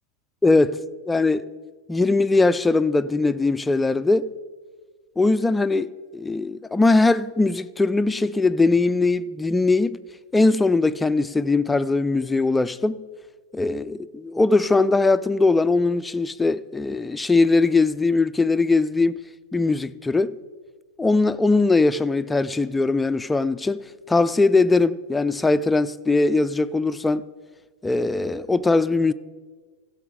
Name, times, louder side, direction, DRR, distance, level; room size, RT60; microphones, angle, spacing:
voice 1, 0.4-0.8 1.1-1.4 1.9-4.3 5.2-10.0 10.3-13.0 13.5-19.1 19.5-20.3 21.0-23.8 24.1-27.3 27.8-29.1, left 3 dB, 10° left, 0.4 m, -20 dB
15.5 x 7.1 x 5.0 m
figure-of-eight pair, 90°, 0 cm